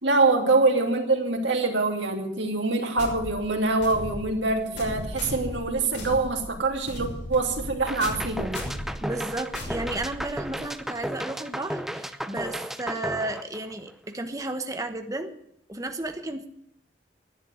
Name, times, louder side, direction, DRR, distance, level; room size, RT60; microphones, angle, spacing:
voice 1, 0.0-8.5, right 3 dB, 80° right, 2 dB, 2.8 m, -24 dB
sound 1, 3.0-10.6, left 1 dB, 80° left, 6.1 m, -37 dB
sound 2, 7.9-14.1, equal, ahead, 0.7 m, -34 dB
voice 2, 9.0-15.3 15.7-16.5, right 2 dB, 20° right, 6 dB, 1.1 m, -33 dB
11.5 x 9.8 x 9.5 m, 0.73 s
head